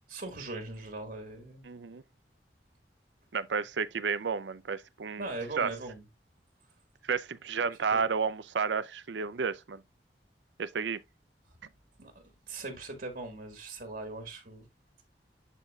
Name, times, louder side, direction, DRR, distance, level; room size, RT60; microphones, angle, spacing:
voice 1, 0.1-1.7 5.2-6.0 7.9-8.0 11.5-11.6 12.0-12.1 12.5-14.7, right 2 dB, 55° right, 1.8 m, -40 dB
voice 2, 1.6-2.0 3.3-5.2 5.6-5.7 7.0-9.8 10.6-11.0, right 5 dB, 85° right, 0.6 m, -31 dB
11.5 x 4.1 x 2.4 m
head